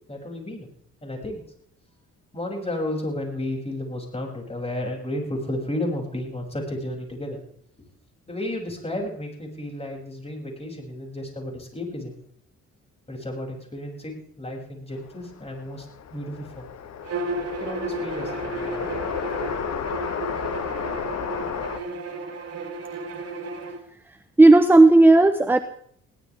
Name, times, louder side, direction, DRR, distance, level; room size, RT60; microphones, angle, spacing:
voice 1, 0.1-0.7 1.0-1.4 2.3-7.4 8.3-12.2 13.1-16.7 17.6-19.1, left 1 dB, 20° left, 0 dB, 7.5 m, -32 dB
sound 1, 15.0-21.8, left 8 dB, 60° left, 1.8 m, -33 dB
Bowed string instrument, 17.0-23.8, right 2 dB, 55° right, 4.8 m, -33 dB
voice 2, 24.4-25.6, right 2 dB, 5° right, 8 dB, 1.0 m, -13 dB
22.0 x 17.0 x 3.7 m, 0.63 s
cardioid pair, 90°, 30 cm